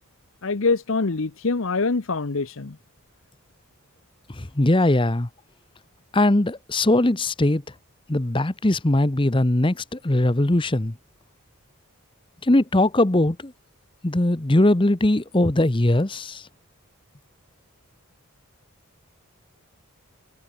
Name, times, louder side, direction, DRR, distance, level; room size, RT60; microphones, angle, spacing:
voice 1, 0.4-2.8, left 3 dB, 65° left, 0.8 m, -24 dB
voice 2, 4.3-5.3 6.1-7.6 8.1-10.9 12.4-13.5 14.0-16.5, left 1 dB, 25° left, 0.9 m, -20 dB
head